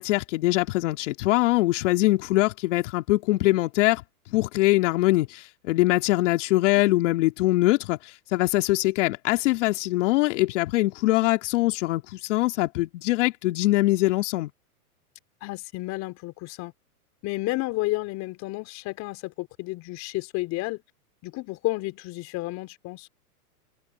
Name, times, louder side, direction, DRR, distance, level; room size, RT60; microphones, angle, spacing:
voice 1, 0.0-4.0 4.3-14.5, left 19 dB, 55° left, 2.9 m, -23 dB
voice 2, 15.4-16.7 17.2-20.8 21.2-23.1, left 21 dB, 35° left, 3.5 m, -31 dB
hypercardioid pair, 125°, 45 cm